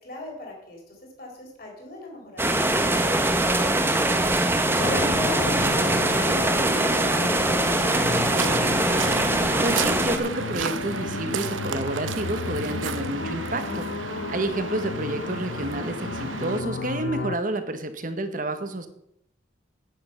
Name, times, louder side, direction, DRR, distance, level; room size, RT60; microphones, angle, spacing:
voice 1, 0.0-2.5, left 1 dB, 50° left, -1 dB, 4.1 m, -42 dB
sound 1, 2.4-10.2, right 1 dB, 10° right, 0.9 m, -22 dB
voice 2, 4.6-5.1 9.6-18.9, right 2 dB, 45° right, 8 dB, 1.2 m, -30 dB
sound 2, 4.8-17.4, left 4 dB, 70° left, 0.5 m, -33 dB
Waves surf, 7.9-16.6, right 6 dB, 90° right, 0.9 m, -33 dB
10.0 x 8.7 x 5.7 m, 0.74 s
head